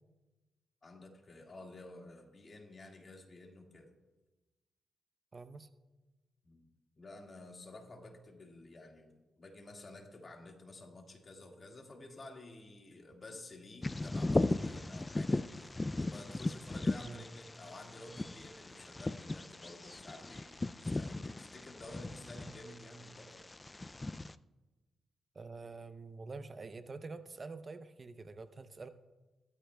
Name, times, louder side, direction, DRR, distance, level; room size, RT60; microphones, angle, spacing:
voice 1, 0.8-3.9 6.4-6.7 7.0-15.7 15.9-23.4, left 2 dB, 40° left, 2 dB, 1.9 m, -52 dB
voice 2, 5.3-5.7 17.0-17.2 25.3-28.9, right 3 dB, 40° right, 10 dB, 0.7 m, -46 dB
Bird vocalization bird call bird song, 13.8-24.3, left 2 dB, 25° left, 0.3 m, -37 dB
16.0 x 13.5 x 2.3 m, 1.2 s
cardioid pair, 70°, 0 cm